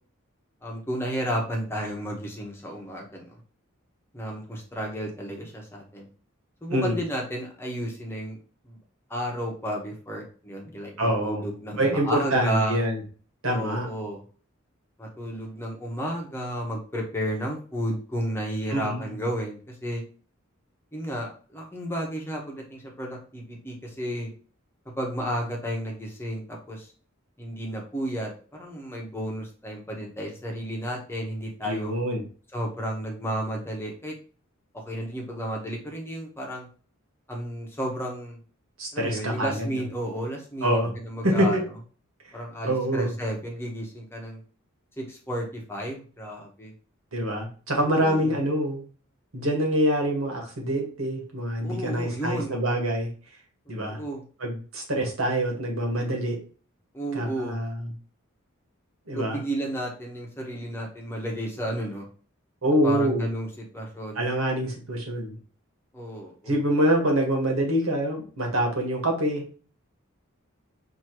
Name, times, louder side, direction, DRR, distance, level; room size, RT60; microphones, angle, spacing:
voice 1, 0.6-3.4 4.1-6.1 6.6-8.4 8.6-8.8 9.1-12.8 13.5-14.2 15.0-20.0 20.9-24.3 25.0-26.9 27.4-28.3 28.6-31.9 32.5-34.1 34.8-36.7 37.3-38.4 38.9-41.6 42.3-44.4 45.0-46.7 47.8-48.3 51.6-52.6 53.9-54.2 56.9-57.6 59.1-62.1 62.8-64.3 65.9-66.6, equal, 10° left, -1 dB, 1.1 m, -32 dB
voice 2, 11.0-11.4 11.8-13.0 13.4-13.9 18.7-19.0 31.6-32.2 38.8-39.7 40.6-40.9 41.2-41.6 42.6-43.1 47.1-48.8 49.3-53.1 53.7-54.0 54.4-56.4 57.1-57.9 59.1-59.4 62.6-63.2 64.1-65.3 66.5-69.4, right 1 dB, 85° right, 1 dB, 1.6 m, -25 dB
6.1 x 2.9 x 3.0 m, 0.40 s
head